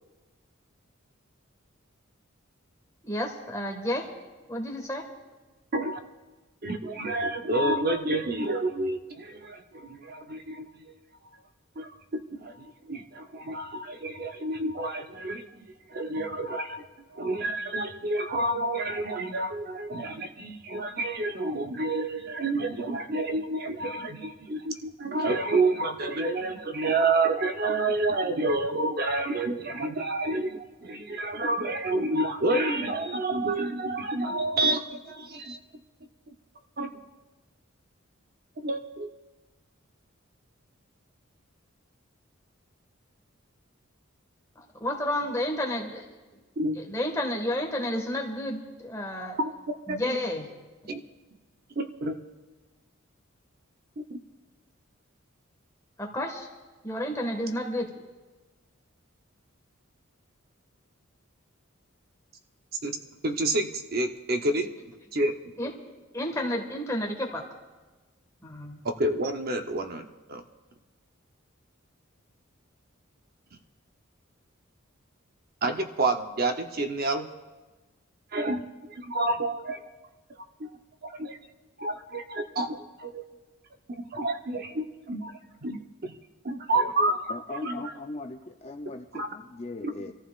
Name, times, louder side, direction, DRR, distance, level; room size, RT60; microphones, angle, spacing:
voice 1, 3.0-4.1 4.5-5.0 44.6-46.0 46.8-49.4 49.9-50.5 56.0-56.5 56.8-57.9 65.6-65.7 66.1-67.4 68.4-68.8, left 1 dB, 15° left, 0 dB, 1.7 m, -31 dB
voice 2, 6.6-10.9 11.8-35.6 36.8-36.9 38.6-39.1 46.6-46.8 49.4-50.2 50.9-51.0 51.8-52.2 54.0-54.2 62.8-63.0 63.2-64.7 65.1-65.3 69.0-70.4 75.6-77.3 78.3-79.8 80.6-80.7 81.0-81.4 81.8-83.2 83.9-85.3 85.6-86.1 86.4-87.8 89.1-89.3 89.8-89.9, right 2 dB, 45° right, 5 dB, 0.8 m, -29 dB
voice 3, 87.3-90.1, left 2 dB, 30° left, 4 dB, 0.6 m, -39 dB
26.5 x 14.5 x 2.4 m, 1.2 s
head